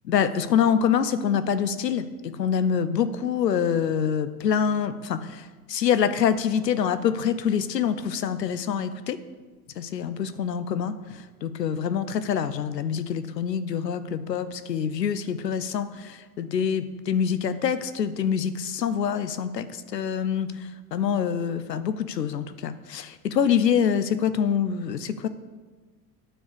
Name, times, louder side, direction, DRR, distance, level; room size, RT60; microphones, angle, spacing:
voice 1, 0.1-9.2 9.8-25.3, left 7 dB, 85° left, 12 dB, 0.6 m, -26 dB
8.9 x 4.7 x 6.5 m, 1.3 s
figure-of-eight pair, 70°, 48 cm